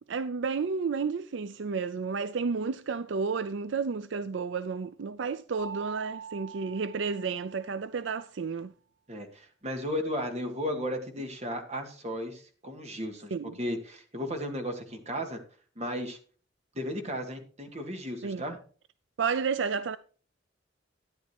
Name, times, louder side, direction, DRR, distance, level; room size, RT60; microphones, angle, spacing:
voice 1, 0.1-8.7 13.3-13.5 18.2-18.4 19.2-20.0, right 5 dB, 65° right, 0.5 m, -31 dB
Mallet percussion, 5.6-8.1, right 6 dB, 90° right, 5.8 m, -44 dB
voice 2, 9.1-15.4 15.8-16.2 16.8-18.6, equal, 35° right, 2.2 m, -35 dB
13.0 x 10.0 x 2.9 m
head